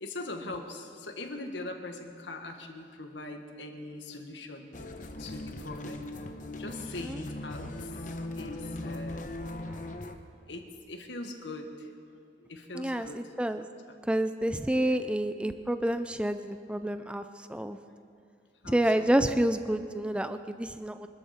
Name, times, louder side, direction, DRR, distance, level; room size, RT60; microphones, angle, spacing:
voice 1, 0.0-4.7 5.2-6.0 6.6-9.4 10.5-11.9 12.5-13.2 14.7-15.0 18.6-19.1, left 2 dB, 75° left, 4 dB, 1.5 m, -41 dB
sound 1, 4.7-10.1, left 1 dB, 45° left, 1.0 m, -39 dB
voice 2, 12.7-13.7 14.0-17.8 18.7-21.1, right 1 dB, 5° right, 9 dB, 0.4 m, -29 dB
24.0 x 13.0 x 4.4 m, 2.5 s
head